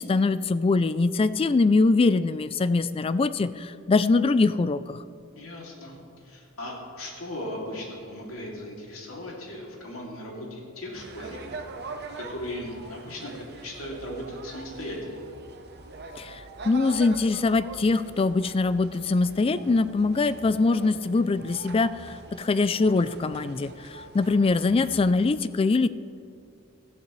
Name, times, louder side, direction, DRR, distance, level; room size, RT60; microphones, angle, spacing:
voice 1, 0.0-5.0 16.2-25.9, left 3 dB, 25° left, 14 dB, 0.3 m, -23 dB
voice 2, 5.3-11.6 12.2-15.3, left 1 dB, 75° left, -2 dB, 2.8 m, -37 dB
sound 1, 10.9-25.2, right 3 dB, 50° right, 0.8 m, -43 dB
17.0 x 13.0 x 3.2 m, 2.5 s
head